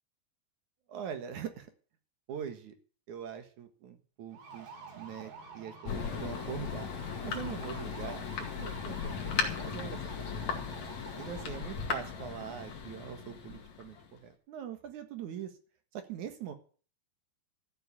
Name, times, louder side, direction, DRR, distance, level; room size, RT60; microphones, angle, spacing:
voice 1, 0.9-1.7 2.3-2.7 3.1-4.7 4.9-6.9 7.2-8.2 8.6-9.0 9.3-10.0 10.3-10.7 11.2-15.5 15.9-16.5, right 8 dB, 60° right, 8 dB, 2.5 m, -42 dB
sound 1, 4.3-12.8, right 5 dB, 90° right, 4.8 m, -50 dB
Thunder, 5.8-14.2, left 6 dB, 50° left, 3.1 m, -37 dB
14.0 x 8.1 x 8.3 m, 0.41 s
omnidirectional pair, 4.7 m